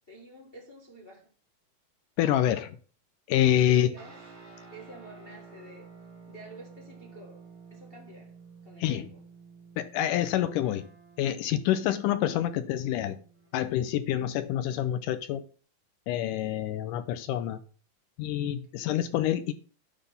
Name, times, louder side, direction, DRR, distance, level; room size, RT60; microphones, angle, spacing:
voice 1, 0.1-1.3 3.6-4.2 4.7-5.9 6.3-7.4 7.7-8.4 8.6-9.2, right 1 dB, 35° left, 0.8 m, -49 dB
voice 2, 2.2-2.8 3.3-3.9 8.8-9.1 9.8-10.9 11.2-13.2 13.5-15.5 16.1-17.6 18.2-19.5, left 11 dB, 80° left, 2.0 m, -27 dB
sound 1, 4.0-13.7, right 4 dB, 25° right, 1.8 m, -51 dB
9.9 x 4.0 x 6.9 m
omnidirectional pair, 4.0 m